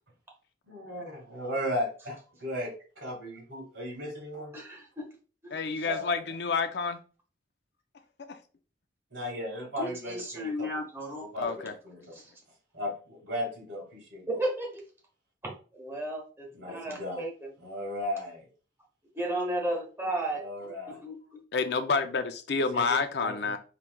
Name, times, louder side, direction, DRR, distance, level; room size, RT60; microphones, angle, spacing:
voice 1, 0.7-2.7 3.0-4.5 5.8-6.2 9.1-10.7 11.2-12.1 12.7-14.2 16.5-17.2 17.6-18.5 20.4-21.0 22.7-23.5, left 1 dB, 85° right, 1 dB, 1.9 m, -36 dB
voice 2, 4.5-5.1 5.4-5.5 9.8-11.3 12.1-12.2 14.3-14.8 15.4-17.5 19.1-20.4 20.9-21.4, right 1 dB, 15° right, -1 dB, 1.3 m, -34 dB
voice 3, 5.5-7.0 8.3-8.4 11.4-11.7 12.0-12.1 21.5-23.6, left 4 dB, 65° left, 8 dB, 0.5 m, -29 dB
5.7 x 3.2 x 2.3 m, 0.37 s
head